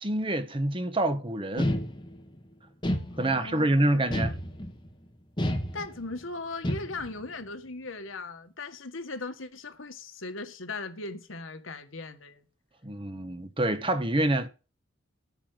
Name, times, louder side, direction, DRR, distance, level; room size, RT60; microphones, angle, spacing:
voice 1, 0.0-1.8 3.2-4.3 12.8-14.5, right 1 dB, 25° right, 1.3 m, -27 dB
sound 1, 1.6-2.3 2.8-3.6 4.1-4.9 5.4-6.2 6.6-7.2, equal, 25° left, 1.8 m, -30 dB
voice 2, 3.1-4.3 5.7-12.4, left 3 dB, 80° left, 1.7 m, -39 dB
9.1 x 7.0 x 7.9 m
head